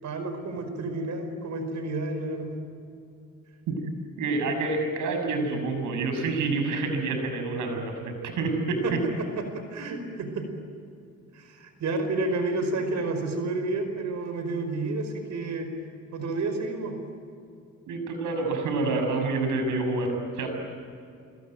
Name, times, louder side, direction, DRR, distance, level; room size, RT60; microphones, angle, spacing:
voice 1, 0.0-2.6 8.8-8.9 9.4-10.5 11.3-15.7 16.1-17.0, right 2 dB, 70° right, 7 dB, 4.9 m, -30 dB
voice 2, 4.2-9.0 17.9-20.5, right 3 dB, 85° right, 5 dB, 6.5 m, -28 dB
26.5 x 23.5 x 9.2 m, 2.5 s
cardioid pair, 90°, 30 cm